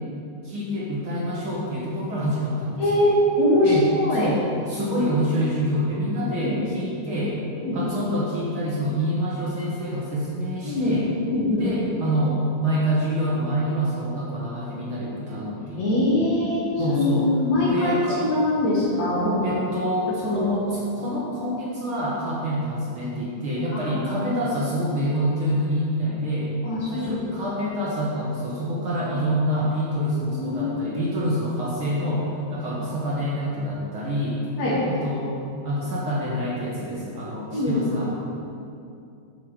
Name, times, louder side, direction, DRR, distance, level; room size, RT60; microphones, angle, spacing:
voice 1, 0.4-2.8 3.6-3.9 4.1-7.4 7.7-11.1 11.6-16.0 16.8-17.3 17.7-18.2 19.4-26.5 26.9-34.4 34.8-35.3 35.6-38.1, equal, 55° right, -5 dB, 1.9 m, -26 dB
voice 2, 2.8-4.3 6.3-6.6 7.6-7.8 10.6-10.9 11.3-11.7 15.8-19.5 20.3-20.4 23.7-24.4 26.6-27.1 30.3-31.0 34.6-34.8 37.5-37.9, left 1 dB, 70° left, -7 dB, 3.9 m, -23 dB
9.8 x 7.6 x 5.1 m, 2.6 s
omnidirectional pair, 3.3 m